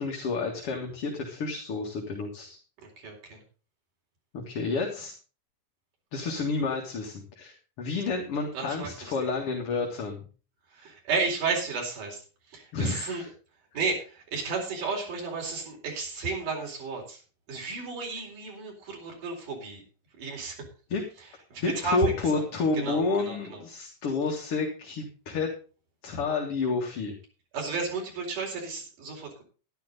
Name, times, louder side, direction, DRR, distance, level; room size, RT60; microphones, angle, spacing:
voice 1, 0.0-2.6 4.3-5.1 6.1-10.2 12.7-13.3 20.9-21.0 21.6-25.5 26.0-27.1, left 3 dB, 50° left, 0 dB, 2.7 m, -30 dB
voice 2, 2.8-3.4 8.5-9.1 10.7-12.2 12.5-13.2 13.7-17.2 17.5-19.8 20.2-20.6 21.5-22.4 22.7-23.6 27.5-29.4, right 4 dB, 90° right, 0 dB, 5.9 m, -33 dB
12.0 x 11.5 x 4.0 m, 0.36 s
omnidirectional pair, 3.5 m